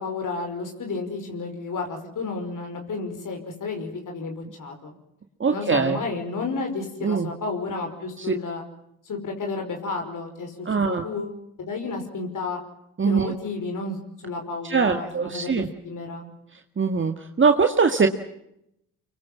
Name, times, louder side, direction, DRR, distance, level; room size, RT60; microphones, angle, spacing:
voice 1, 0.0-5.0 5.5-8.6 9.0-12.6 13.1-16.3, left 3 dB, 65° left, 3 dB, 5.5 m, -32 dB
voice 2, 5.4-6.0 7.0-7.3 8.2-8.3 10.7-11.1 13.0-13.3 14.6-15.7 16.8-18.1, right 5 dB, 35° right, 5 dB, 1.9 m, -22 dB
25.0 x 23.0 x 7.4 m, 0.79 s
cardioid pair, 70°, 34 cm